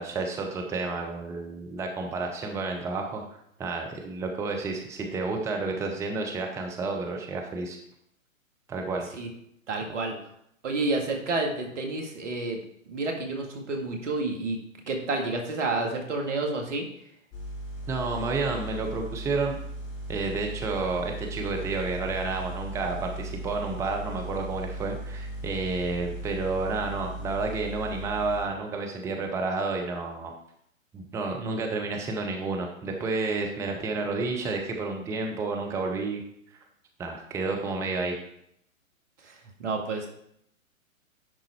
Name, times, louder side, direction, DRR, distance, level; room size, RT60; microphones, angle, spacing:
voice 1, 0.0-3.2 3.6-7.8 8.7-9.1 17.9-19.6 20.1-30.3 30.9-36.2 37.0-38.2, right 3 dB, 5° right, 2 dB, 0.6 m, -30 dB
voice 2, 9.7-10.1 10.6-12.6 12.9-14.6 14.9-16.8 39.6-40.1, right 3 dB, 60° right, 2 dB, 2.1 m, -29 dB
sound 1, 17.3-28.5, right 1 dB, 20° left, 1.9 m, -37 dB
10.5 x 3.9 x 4.4 m, 0.72 s
figure-of-eight pair, 120°, 41 cm